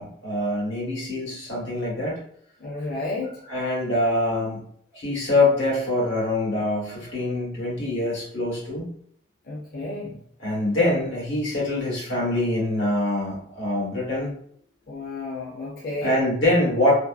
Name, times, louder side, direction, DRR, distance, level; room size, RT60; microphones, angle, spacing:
voice 1, 0.0-2.2 3.4-4.6 4.9-8.9 10.4-14.3 16.0-16.9, left 1 dB, 90° left, -5 dB, 1.3 m, -24 dB
voice 2, 2.6-3.4 9.4-10.2 14.9-16.2, left 2 dB, 50° left, -5 dB, 0.5 m, -32 dB
2.6 x 2.3 x 2.4 m, 0.63 s
head